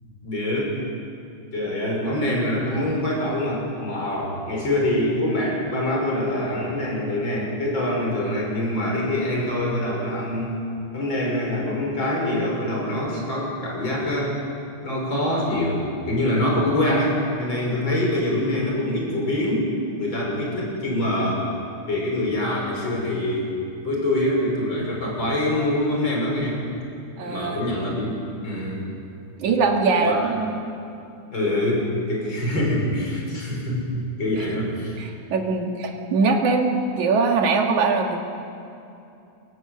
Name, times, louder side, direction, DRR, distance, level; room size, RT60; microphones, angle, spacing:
voice 1, 0.2-0.8 1.5-10.6 10.9-14.4 14.8-21.5 21.9-23.5 23.8-26.6 27.2-28.8 29.9-30.2 31.3-31.8 32.1-33.8 34.2-35.0, left 1 dB, 40° left, -2 dB, 6.9 m, -24 dB
voice 2, 27.2-27.6 29.4-30.6 35.0-38.2, right 4 dB, 80° right, 2 dB, 3.5 m, -22 dB
29.5 x 18.5 x 8.1 m, 2.8 s
omnidirectional pair, 3.3 m